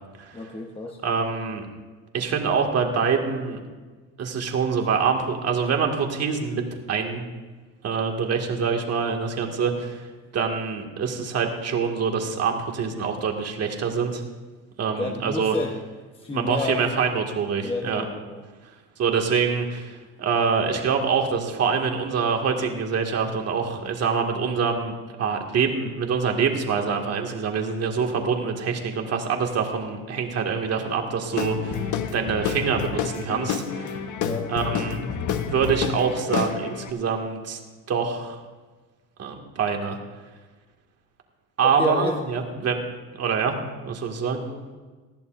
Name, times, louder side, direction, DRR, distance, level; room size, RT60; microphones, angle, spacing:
voice 1, 0.3-1.0 15.0-15.8 16.1-16.8 17.6-18.4 34.2-34.5 41.6-42.2 44.3-44.8, left 2 dB, 15° left, 0 dB, 1.2 m, -30 dB
voice 2, 1.0-1.6 2.1-3.6 4.2-6.6 6.9-7.3 7.8-10.1 10.3-14.2 14.8-15.6 16.3-18.0 19.0-24.9 25.2-34.0 34.5-35.0 35.4-37.6 37.9-38.4 39.2-40.0 41.6-42.8 43.2-43.5 43.8-44.4, right 6 dB, 45° right, 2 dB, 2.1 m, -25 dB
Guitar / Drum, 31.3-36.9, left 7 dB, 55° left, 1.3 m, -29 dB
19.5 x 14.0 x 2.6 m, 1.3 s
supercardioid pair, 105°, 35 cm